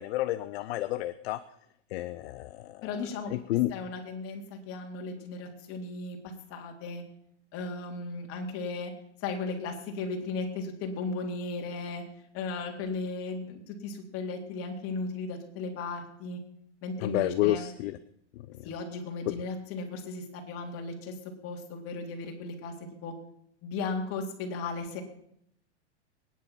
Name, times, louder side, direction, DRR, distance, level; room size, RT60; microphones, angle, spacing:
voice 1, 0.0-1.4 1.9-2.9 3.3-3.7 17.0-18.0 18.5-18.7 19.3-19.4, left 15 dB, 60° left, 12 dB, 0.8 m, -30 dB
voice 2, 2.8-3.3 3.7-7.0 7.5-8.9 9.2-12.0 12.3-16.4 16.8-17.7 18.6-21.1 21.4-22.7 23.0-23.1 23.6-25.0, left 3 dB, 40° left, 2 dB, 3.8 m, -36 dB
22.5 x 10.5 x 5.8 m, 0.72 s
hypercardioid pair, 130°, 35 cm